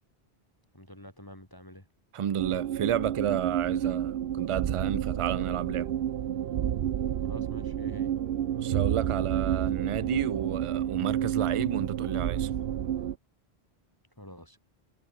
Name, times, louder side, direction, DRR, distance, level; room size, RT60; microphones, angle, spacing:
voice 1, 0.7-1.9 7.2-8.1 14.2-14.6, equal, 20° left, 4.2 m, -46 dB
voice 2, 2.1-5.9 8.6-12.5, right 9 dB, 45° right, 0.4 m, -31 dB
sound 1, 2.4-13.1, right 10 dB, 70° right, 0.9 m, -30 dB
omnidirectional pair, 1.1 m